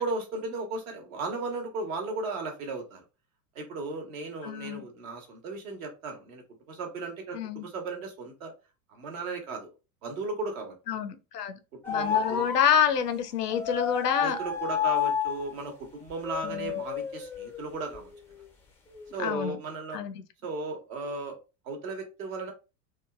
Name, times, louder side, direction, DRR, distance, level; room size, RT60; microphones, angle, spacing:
voice 1, 0.0-3.0 3.5-6.4 6.7-8.5 8.9-9.7 10.0-10.7 11.8-12.4 14.2-18.1 19.1-20.0 20.4-21.4 21.6-22.5, right 3 dB, 60° right, 1.1 m, -35 dB
voice 2, 4.4-4.8 7.3-7.6 10.9-11.5 11.9-14.4 16.5-16.7 19.2-19.6 19.9-20.1, left 8 dB, 80° left, 0.6 m, -27 dB
sound 1, 11.8-12.9 13.5-15.6 16.1-18.4 18.9-19.3, left 8 dB, 5° left, 0.3 m, -31 dB
2.9 x 2.3 x 2.3 m
figure-of-eight pair, 85°, 47 cm